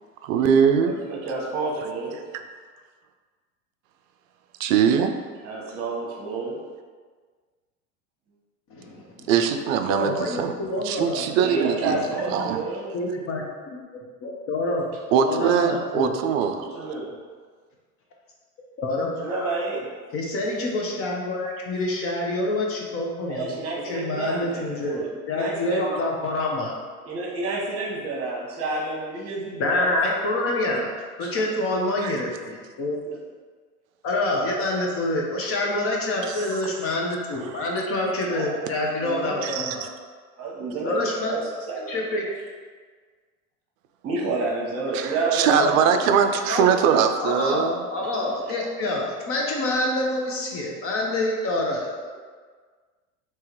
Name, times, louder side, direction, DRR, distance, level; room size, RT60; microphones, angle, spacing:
voice 1, 0.3-1.0 4.6-5.1 9.3-10.5 10.8-12.6 15.1-16.7 32.0-32.1 36.3-36.4 37.5-37.6 38.8-38.9 39.4-39.9 44.9-47.8, right 7 dB, 60° right, 7 dB, 0.5 m, -22 dB
voice 2, 0.8-2.2 5.4-6.6 11.4-12.9 16.5-17.1 19.2-19.9 23.3-25.9 27.0-29.9 31.2-31.5 33.0-33.2 38.3-38.7 39.0-39.4 40.4-41.9 44.0-45.8 48.0-48.1 48.4-48.5, right 3 dB, 30° right, -3 dB, 1.2 m, -30 dB
voice 3, 8.7-9.3 9.9-11.5 12.4-12.5 12.9-13.8 14.2-14.9 15.2-16.1 18.8-19.1 20.1-23.6 23.8-26.8 29.6-30.9 31.2-33.0 34.0-39.9 40.8-41.4 41.9-42.3 45.5-45.7 46.0-46.2 46.5-46.7 47.2-52.1, left 2 dB, 30° left, -1 dB, 0.8 m, -27 dB
3.5 x 3.0 x 3.0 m, 1.5 s
hypercardioid pair, 100°, 45 cm